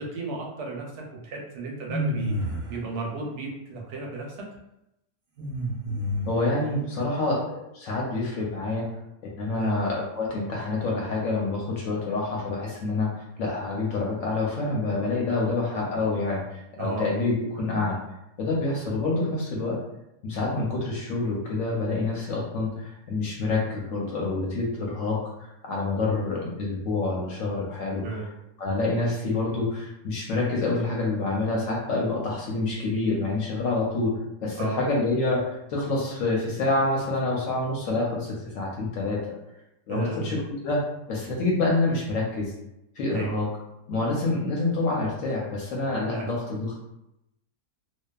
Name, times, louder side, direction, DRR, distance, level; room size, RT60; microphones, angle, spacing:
voice 1, 0.0-2.3 2.7-4.4 9.5-9.8 16.8-17.1 28.0-28.3 34.6-34.8 39.9-40.4 43.1-43.3 46.1-46.3, right 3 dB, 80° right, -1 dB, 1.1 m, -33 dB
sound 1, 1.9-2.8 5.4-6.5, equal, 55° right, 0.8 m, -29 dB
voice 2, 6.3-8.9 9.4-19.8 20.2-28.2 28.6-39.2 39.9-40.8 41.1-42.5 43.0-43.5 43.9-46.8, left 2 dB, 65° left, -3 dB, 0.9 m, -27 dB
2.7 x 2.2 x 2.2 m, 0.87 s
omnidirectional pair, 1.7 m